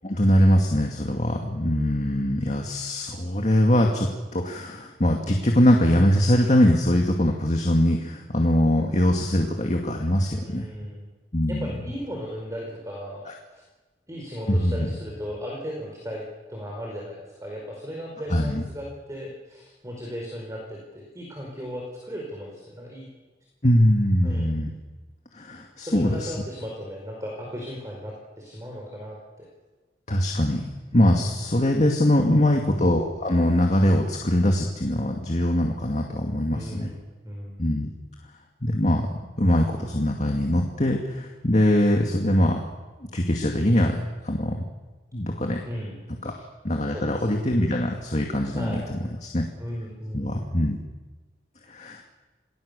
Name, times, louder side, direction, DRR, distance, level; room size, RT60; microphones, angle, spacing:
voice 1, 0.0-10.7 11.3-11.7 14.5-14.9 18.3-18.6 23.6-24.7 25.3-26.3 30.1-30.6 30.9-36.9 37.6-37.9 38.6-39.1 39.4-42.6 43.1-44.6 45.1-45.6 46.2-46.3 46.6-49.5 50.1-50.8 51.7-52.1, left 1 dB, 40° left, 1 dB, 2.3 m, -22 dB
voice 2, 10.4-11.1 11.5-13.2 13.5-13.6 14.1-23.1 24.2-24.6 25.8-29.5 30.9-31.4 36.5-37.6 45.6-46.0 46.9-47.2 48.5-48.9 49.6-50.3, equal, 20° right, -1 dB, 5.0 m, -36 dB
28.5 x 19.5 x 7.0 m, 1.3 s
head